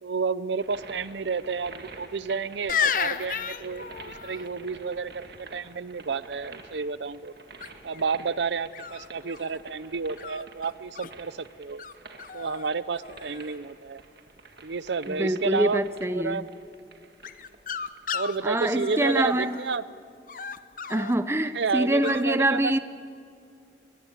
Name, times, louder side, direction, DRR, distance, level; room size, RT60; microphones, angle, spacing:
voice 1, 0.0-7.3 7.8-11.8 12.3-14.0 14.6-15.8 16.1-16.4 18.1-19.8 21.5-22.8, right 4 dB, 75° right, 17 dB, 0.6 m, -30 dB
sound 1, 0.6-18.1, right 3 dB, 60° right, 1.9 m, -49 dB
sound 2, 2.7-4.4 7.6-8.0 8.7-9.6 10.2-11.1 11.8-11.9 12.2-12.7 12.9-13.5 17.2-19.7 20.3-21.1 22.0-22.2, left 7 dB, 45° left, 0.7 m, -33 dB
voice 2, 15.1-16.4 18.4-19.6 20.9-22.8, right 1 dB, 15° right, 11 dB, 0.6 m, -25 dB
22.5 x 21.5 x 8.2 m, 2.5 s
head